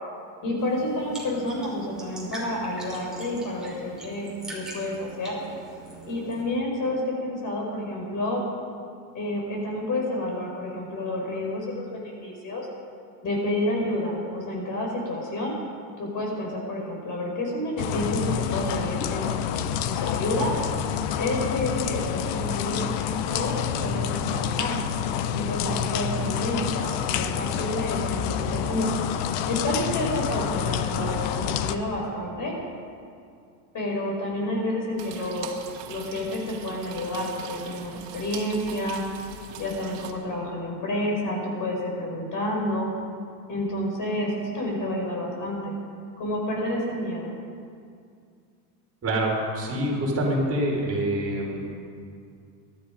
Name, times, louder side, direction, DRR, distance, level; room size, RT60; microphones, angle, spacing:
voice 1, 0.4-5.4 6.0-8.4 9.1-12.7 13.2-15.6 16.0-20.5 21.2-24.8 25.3-28.9 29.5-32.6 33.7-39.0 39.6-42.9 43.5-45.7 46.2-47.3, left 1 dB, 40° left, -1 dB, 5.4 m, -29 dB
sound 1, 0.6-6.4, right 1 dB, ahead, 5.6 m, -42 dB
sound 2, 17.8-31.8, left 8 dB, 55° left, 1.1 m, -28 dB
sound 3, 35.0-40.1, right 8 dB, 55° right, 2.3 m, -41 dB
voice 2, 49.0-51.6, right 1 dB, 30° right, -2 dB, 4.8 m, -26 dB
22.5 x 12.5 x 5.2 m, 2.3 s
supercardioid pair, 120°, 49 cm